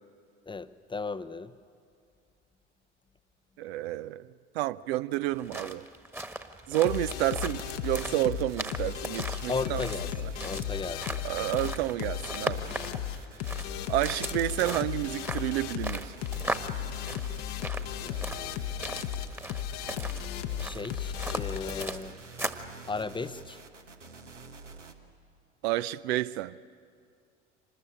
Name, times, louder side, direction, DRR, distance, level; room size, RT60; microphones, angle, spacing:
voice 1, 0.5-1.5 9.5-10.1 10.4-11.2 18.0-18.6 20.6-22.2 22.9-23.6, left 4 dB, 15° left, 0.7 m, -36 dB
voice 2, 3.6-5.9 6.7-9.8 10.2-10.3 11.2-12.6 13.9-16.1 25.6-26.6, right 15 dB, 60° right, 0.6 m, -30 dB
sound 1, 5.3-22.7, right 1 dB, 5° right, 1.5 m, -38 dB
sound 2, 6.8-21.8, left 11 dB, 55° left, 1.1 m, -35 dB
sound 3, 6.8-24.9, right 3 dB, 85° right, 1.4 m, -48 dB
25.5 x 20.0 x 8.9 m
figure-of-eight pair, 65°, 36 cm